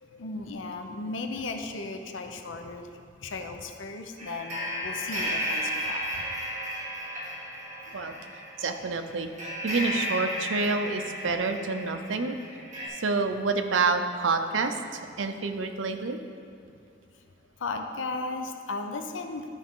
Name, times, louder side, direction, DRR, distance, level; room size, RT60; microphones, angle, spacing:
voice 1, 0.0-2.9 3.2-6.3 17.6-19.5, left 3 dB, 85° left, 5 dB, 0.6 m, -36 dB
sound 1, 4.2-12.9, equal, 40° right, 2.1 m, -34 dB
voice 2, 7.9-9.3 9.6-12.4 12.9-16.2, right 4 dB, 85° right, 7 dB, 0.6 m, -28 dB
13.0 x 4.8 x 3.7 m, 2.5 s
head